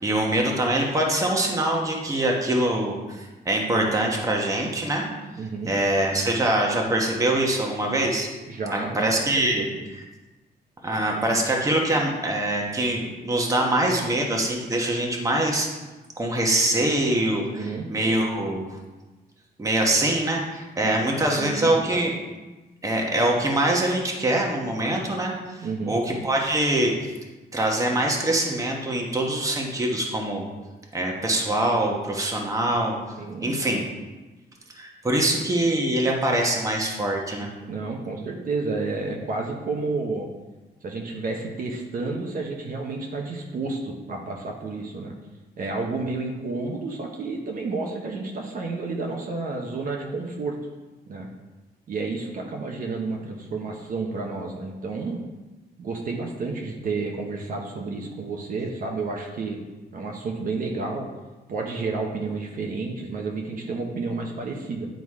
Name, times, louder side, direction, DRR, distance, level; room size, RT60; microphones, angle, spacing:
voice 1, 0.0-5.0 5.6-8.3 8.7-10.0 10.8-15.7 16.2-18.8 19.6-22.1 22.8-25.3 25.9-26.9 27.5-30.5 30.9-33.0 33.4-33.8 34.7-37.5, right 1 dB, 20° right, 0 dB, 1.1 m, -24 dB
voice 2, 5.3-5.7 8.5-9.1 9.5-9.8 10.9-11.4 17.3-17.9 20.8-20.9 21.3-21.9 25.6-25.9 33.2-33.5 37.7-40.3 40.8-45.1 45.6-50.6 51.1-51.3 51.9-55.2 55.8-59.6 59.9-61.1 61.5-64.9, right 3 dB, 55° right, 0 dB, 1.0 m, -31 dB
9.5 x 4.0 x 4.8 m, 1.2 s
wide cardioid pair, 155°, 17 cm